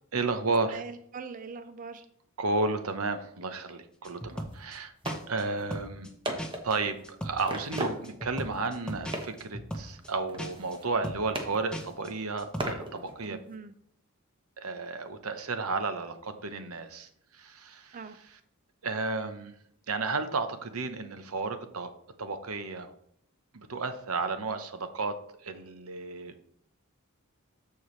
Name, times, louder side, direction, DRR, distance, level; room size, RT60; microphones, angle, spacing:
voice 1, 0.1-0.8 2.4-4.9 5.3-6.1 6.6-13.4 14.6-18.0 18.8-19.5 19.9-21.9 22.2-22.9 23.5-26.3, right 3 dB, 85° right, 9 dB, 0.9 m, -33 dB
voice 2, 0.7-2.0 13.3-13.7 17.9-18.2, right 4 dB, 40° right, 10 dB, 0.4 m, -42 dB
sound 1, 4.0-4.8 5.0-5.4 5.7-6.1 6.4-6.8 7.0-7.4 7.7-10.1 10.4-10.8 11.0-11.4 11.7-12.1 12.4-12.6, equal, 5° left, 0.9 m, -38 dB
sound 2, 4.1-4.2 4.5-4.6 5.0-5.3 5.6-5.7 6.2-7.1 7.5-8.3 8.5-8.7 9.1-9.5 9.8-11.0 11.3-12.1 12.6-13.6, right 1 dB, 25° right, 1.1 m, -37 dB
13.5 x 4.7 x 3.2 m, 0.68 s
head